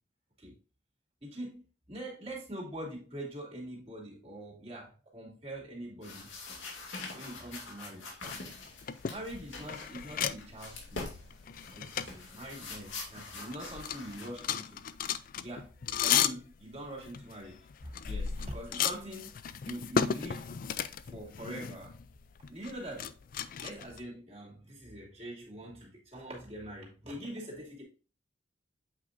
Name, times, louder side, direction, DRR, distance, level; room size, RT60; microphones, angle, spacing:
voice 1, 1.2-1.6 1.9-6.3 7.1-8.2 9.1-11.1 11.7-14.8 15.4-15.7 16.0-19.3 19.6-20.5 21.1-21.9 22.5-23.1 23.6-27.8, right 1 dB, 30° right, 2.6 m, -43 dB
sound 1, 6.0-14.3, left 3 dB, 85° left, 2.3 m, -45 dB
sound 2, 8.2-13.3 13.5-24.0, left 8 dB, 45° left, 0.3 m, -35 dB
8.3 x 5.1 x 2.6 m
head